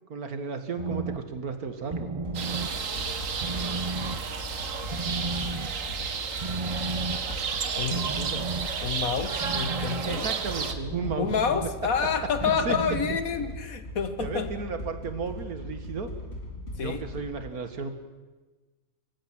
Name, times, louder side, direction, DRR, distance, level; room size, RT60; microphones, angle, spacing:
voice 1, 0.1-2.1 7.8-8.5 10.0-11.3 12.4-12.8 14.2-16.1 16.7-17.9, right 4 dB, 85° right, 7 dB, 2.2 m, -34 dB
sound 1, 0.8-13.5, right 3 dB, 40° right, 0.4 m, -36 dB
sound 2, 2.3-17.2, left 1 dB, 45° left, 3.4 m, -39 dB
sound 3, 2.3-10.7, right 6 dB, 60° right, 1.5 m, -32 dB
voice 2, 8.8-10.3 11.2-14.5 16.8-17.1, left 6 dB, 70° left, 10 dB, 1.7 m, -28 dB
25.0 x 15.5 x 7.5 m, 1.2 s
omnidirectional pair, 1.5 m